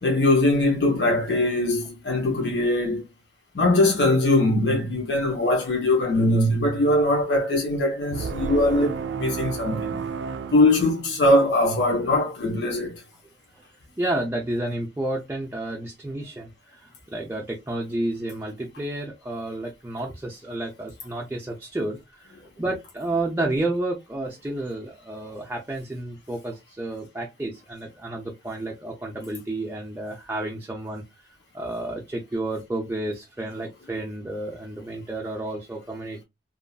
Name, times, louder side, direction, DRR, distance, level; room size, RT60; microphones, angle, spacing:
voice 1, 0.0-3.0 3.5-10.0 10.5-13.0, left 1 dB, 75° left, 1.2 m, -21 dB
sound 1, 8.1-11.5, right 6 dB, 80° right, 0.3 m, -32 dB
voice 2, 14.0-31.0 31.5-36.2, right 1 dB, 10° right, 0.4 m, -31 dB
2.9 x 2.5 x 2.2 m
head